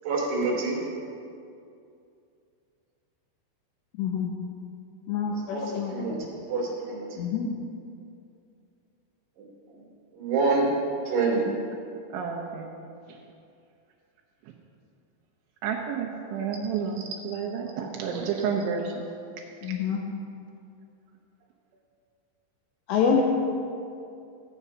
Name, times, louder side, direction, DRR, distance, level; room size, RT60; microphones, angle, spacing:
voice 1, 0.0-0.8 5.3-7.2 9.7-9.8 10.1-10.7 11.1-11.5 18.1-18.4, right 3 dB, 40° right, -4 dB, 3.6 m, -27 dB
voice 2, 4.0-4.3 5.1-6.3 7.2-7.5 19.6-20.0 22.9-23.2, left 6 dB, 80° left, -1 dB, 2.6 m, -26 dB
voice 3, 12.1-12.7 15.6-19.1, right 6 dB, 75° right, 0 dB, 3.0 m, -30 dB
14.0 x 8.6 x 5.6 m, 2.5 s
omnidirectional pair, 5.8 m